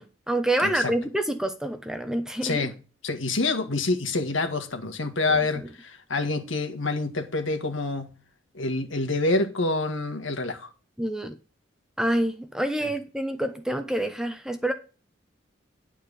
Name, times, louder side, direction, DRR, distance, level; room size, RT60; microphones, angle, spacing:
voice 1, 0.0-2.7 5.3-5.7 11.0-11.4 12.0-14.7, right 1 dB, 5° right, 0.9 m, -27 dB
voice 2, 2.4-2.7 3.0-8.1 8.5-10.7, left 3 dB, 80° left, 1.8 m, -27 dB
10.5 x 4.6 x 6.9 m
head